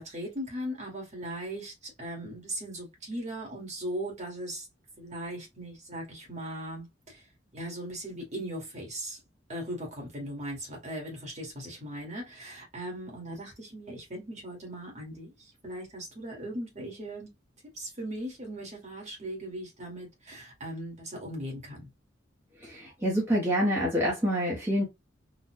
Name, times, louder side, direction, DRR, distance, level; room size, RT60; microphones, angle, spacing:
voice 1, 0.0-4.7 5.0-7.2 7.5-9.2 9.5-17.3 17.7-21.9, right 1 dB, 40° right, 1.7 m, -38 dB
voice 2, 22.6-24.9, equal, 10° right, 1.1 m, -27 dB
3.9 x 2.5 x 2.6 m
head